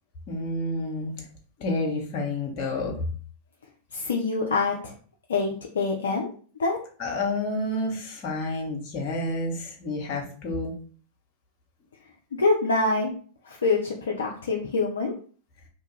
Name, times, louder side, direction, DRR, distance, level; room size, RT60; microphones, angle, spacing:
voice 1, 0.3-1.2 1.6-3.0 7.0-10.7, left 2 dB, 45° left, 0 dB, 0.8 m, -29 dB
voice 2, 3.9-4.9 5.3-6.3 6.6-6.8 12.3-13.1 13.5-15.1, left 3 dB, 65° left, 0 dB, 0.4 m, -25 dB
2.6 x 2.3 x 3.0 m, 0.42 s
figure-of-eight pair, 90°, 0 cm